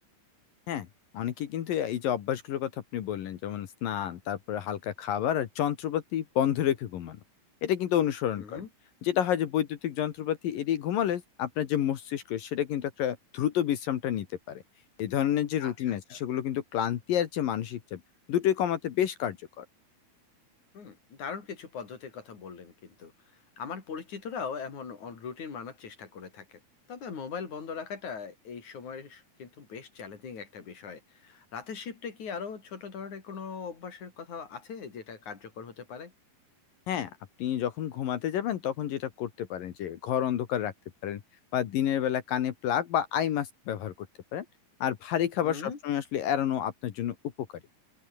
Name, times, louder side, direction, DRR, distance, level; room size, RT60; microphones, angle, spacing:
voice 1, 1.1-7.2 7.6-8.6 9.0-14.6 15.0-18.0 18.3-19.6 36.9-37.1 37.4-40.7 41.0-41.2 41.5-44.1 44.3-44.5 44.8-47.2, left 10 dB, 70° left, 3.1 m, -29 dB
voice 2, 8.4-8.7 15.6-16.2 20.7-23.1 23.6-26.6 26.9-36.1 45.4-45.8, left 6 dB, 50° left, 5.5 m, -40 dB
open air
omnidirectional pair, 4.4 m